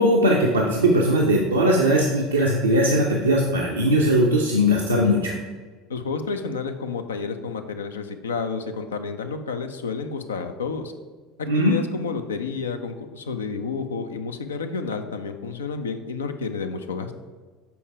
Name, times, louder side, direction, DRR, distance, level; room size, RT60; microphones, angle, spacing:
voice 1, 0.0-5.4 11.5-11.7, equal, 85° right, -2 dB, 0.7 m, -19 dB
voice 2, 5.9-10.9 11.4-17.1, left 4 dB, 80° left, 7 dB, 0.5 m, -30 dB
7.0 x 4.5 x 4.8 m, 1.4 s
figure-of-eight pair, 70°, 0 cm